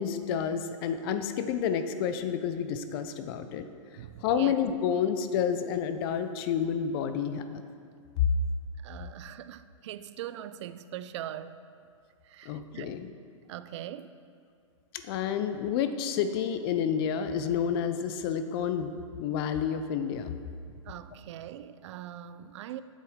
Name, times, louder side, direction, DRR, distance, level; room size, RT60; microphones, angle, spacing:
voice 1, 0.0-3.6 4.2-7.6 12.5-13.1 14.9-20.3, left 8 dB, 45° left, 9 dB, 0.5 m, -30 dB
voice 2, 4.0-4.6 8.8-11.6 12.2-13.0 13.5-14.2 20.8-22.8, right 11 dB, 60° right, 13 dB, 0.4 m, -41 dB
8.1 x 7.4 x 3.6 m, 2.3 s
hypercardioid pair, 125°, 17 cm